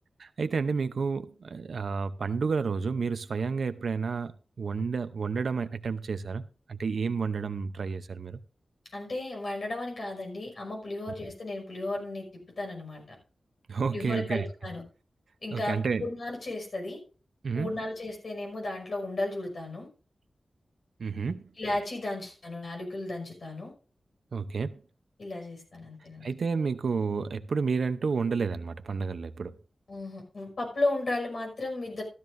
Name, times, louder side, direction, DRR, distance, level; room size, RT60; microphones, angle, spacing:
voice 1, 0.2-4.3 4.6-6.4 6.7-8.4 13.7-14.5 15.5-16.0 17.4-17.7 21.0-21.5 24.3-24.8 26.2-29.6, right 5 dB, 75° right, 0.7 m, -30 dB
voice 2, 8.9-12.3 12.6-13.0 13.9-14.8 15.4-17.0 17.5-19.9 21.6-23.7 25.2-26.4 29.9-32.0, left 2 dB, 65° left, 5.6 m, -34 dB
14.5 x 12.5 x 2.6 m
cardioid pair, 65°, 0 cm